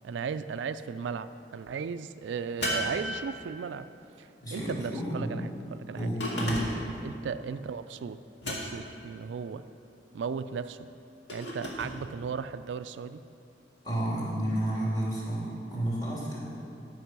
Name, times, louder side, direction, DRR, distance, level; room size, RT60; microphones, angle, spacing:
voice 1, 0.0-3.9 4.2-6.1 7.0-8.2 8.5-9.6 10.1-10.9 11.3-13.2, right 6 dB, 85° right, 12 dB, 0.3 m, -36 dB
sound 1, 2.6-3.7 6.2-7.0 8.4-9.0 11.3-12.0, equal, 70° left, 2.0 m, -33 dB
voice 2, 4.4-5.3 5.9-6.7 13.8-16.4, right 1 dB, 20° left, -6 dB, 2.5 m, -31 dB
13.5 x 5.3 x 6.0 m, 2.6 s
head